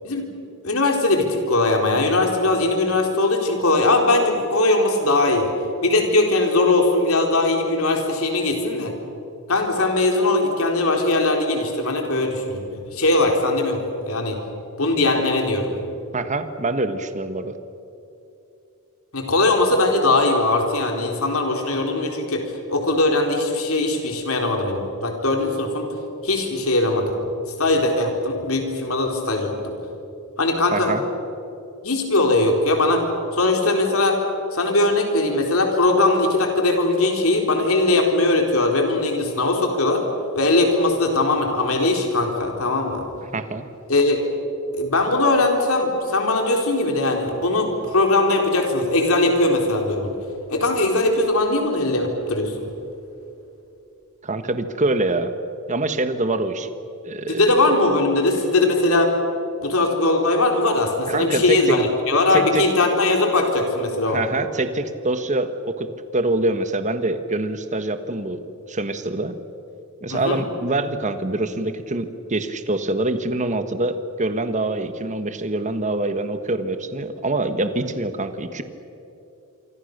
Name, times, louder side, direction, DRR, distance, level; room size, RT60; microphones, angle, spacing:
voice 1, 0.6-5.5 5.8-8.9 9.5-14.4 14.8-15.7 19.1-22.4 22.7-25.9 26.2-27.1 27.6-29.7 30.4-30.9 31.8-33.0 33.3-34.2 34.5-40.0 40.3-43.0 43.9-44.2 44.7-50.1 50.5-52.7 57.3-59.1 59.6-64.2 70.1-70.4, left 2 dB, 70° left, 2 dB, 4.2 m, -20 dB
voice 2, 16.1-17.5 30.7-31.0 43.3-43.7 54.2-55.3 55.7-56.7 57.0-57.5 61.1-61.7 62.3-62.6 64.0-68.4 68.7-69.4 70.0-78.6, right 2 dB, 35° right, 10 dB, 1.4 m, -25 dB
27.0 x 25.0 x 6.7 m, 2.8 s
head